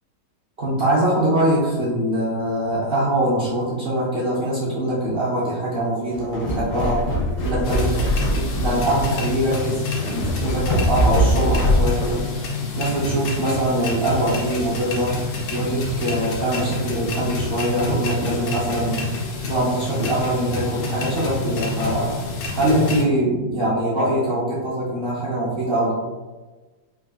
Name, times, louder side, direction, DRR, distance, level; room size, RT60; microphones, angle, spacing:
voice 1, 0.6-7.1 7.4-19.0 19.4-22.1 22.5-25.9, right 1 dB, 55° right, -9 dB, 0.7 m, -23 dB
sound 1, 6.1-12.2, equal, 65° left, 0.8 m, -22 dB
sound 2, 7.6-23.0, left 3 dB, 90° left, 1.3 m, -28 dB
3.7 x 2.5 x 2.3 m, 1.2 s
omnidirectional pair, 1.9 m